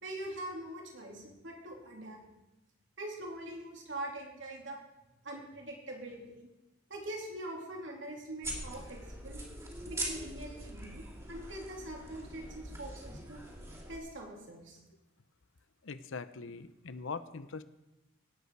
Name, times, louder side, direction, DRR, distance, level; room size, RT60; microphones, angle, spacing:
voice 1, 0.0-2.3 3.0-4.8 5.2-6.5 6.9-9.4 9.8-13.4 13.9-14.8, right 1 dB, 65° right, -1 dB, 3.0 m, -43 dB
sound 1, 8.4-14.0, right 1 dB, 15° right, 2.4 m, -42 dB
voice 2, 15.8-17.6, left 4 dB, 75° left, 13 dB, 0.7 m, -42 dB
17.5 x 8.2 x 4.7 m, 0.97 s
head